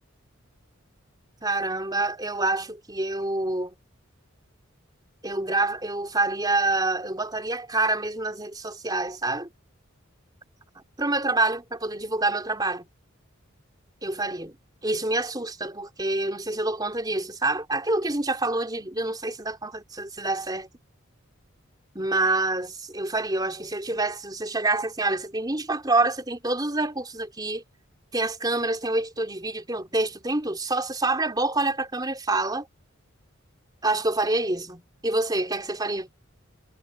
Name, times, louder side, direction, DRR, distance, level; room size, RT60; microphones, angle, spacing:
voice 1, 1.4-3.7 5.2-9.5 11.0-12.8 14.0-14.6 14.8-20.7 21.9-27.6 28.1-32.7 33.8-36.1, right 2 dB, 20° right, 4.1 m, -27 dB
head